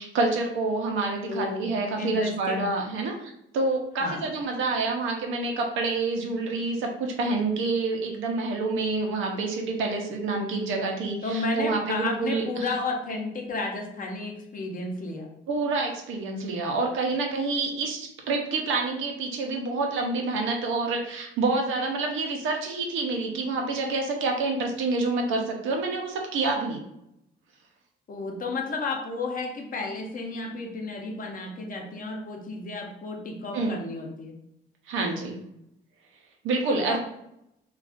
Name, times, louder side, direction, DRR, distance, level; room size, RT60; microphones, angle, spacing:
voice 1, 0.0-12.7 15.5-26.8 33.5-33.8 34.9-35.4 36.4-37.0, right 3 dB, 85° right, 2 dB, 0.7 m, -28 dB
voice 2, 1.3-1.7 2.0-2.7 4.0-4.2 11.2-15.3 28.1-34.3 36.7-37.0, left 3 dB, 45° left, 1 dB, 0.7 m, -32 dB
2.4 x 2.4 x 3.4 m, 0.80 s
cardioid pair, 90°, 20 cm